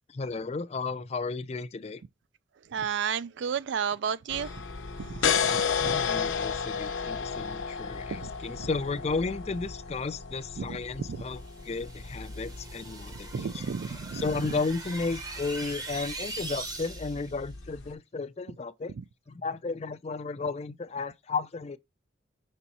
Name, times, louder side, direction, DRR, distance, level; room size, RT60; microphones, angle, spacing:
voice 1, 0.1-2.0 5.5-13.6 14.1-18.9 19.3-21.8, left 4 dB, 30° left, 0.4 m, -34 dB
voice 2, 2.7-4.6 5.0-5.5 5.8-5.9 8.1-8.3 8.6-8.7 10.6-10.8 11.1-11.2 13.3-14.4 19.0-19.1, right 7 dB, 65° right, 0.3 m, -32 dB
sound 1, 4.3-17.9, left 6 dB, 80° left, 0.7 m, -34 dB
sound 2, 11.3-17.3, right 2 dB, 20° right, 0.9 m, -41 dB
5.5 x 4.3 x 4.1 m
head